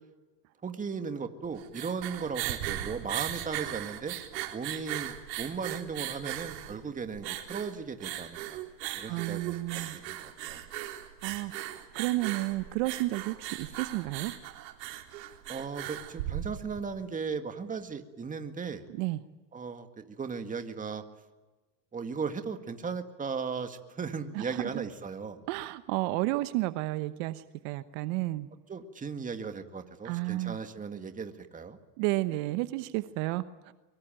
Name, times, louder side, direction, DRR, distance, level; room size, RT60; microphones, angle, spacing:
voice 1, 0.6-4.2 4.5-8.6 8.9-10.6 15.5-18.8 19.5-21.0 21.9-25.4 28.7-31.8, right 5 dB, 15° right, 7 dB, 1.9 m, -37 dB
sound 1, 1.4-16.9, right 13 dB, 80° right, 3.9 m, -38 dB
voice 2, 9.1-10.0 11.2-14.3 19.0-19.2 24.3-24.6 25.5-28.5 30.0-30.6 32.0-33.7, right 18 dB, 55° right, 12 dB, 1.1 m, -32 dB
23.5 x 22.5 x 9.0 m, 1.2 s
supercardioid pair, 130°, 50 cm